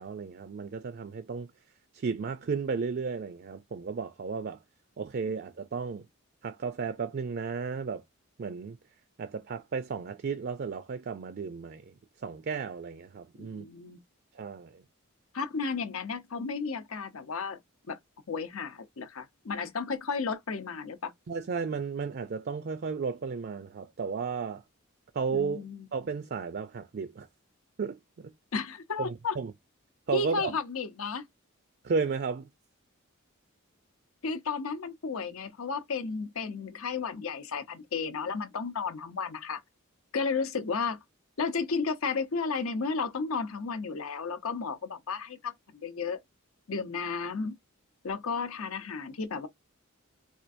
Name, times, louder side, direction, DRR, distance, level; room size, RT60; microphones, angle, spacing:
voice 1, 0.0-1.5 1.9-4.6 5.0-6.0 6.4-8.0 8.4-8.8 9.2-11.9 12.2-13.7 14.3-14.8 21.3-24.6 25.1-25.6 25.9-27.3 27.8-28.0 29.0-29.5 30.1-30.5 31.8-32.5, right 5 dB, 45° right, 0.4 m, -33 dB
voice 2, 13.4-14.0 15.3-17.6 17.9-18.0 18.3-21.1 25.3-25.9 28.5-29.4 30.1-31.3 34.2-39.6 40.1-41.0 41.4-46.2 46.7-47.6 48.0-49.5, left 5 dB, 70° left, 0.7 m, -33 dB
4.3 x 2.4 x 2.5 m
head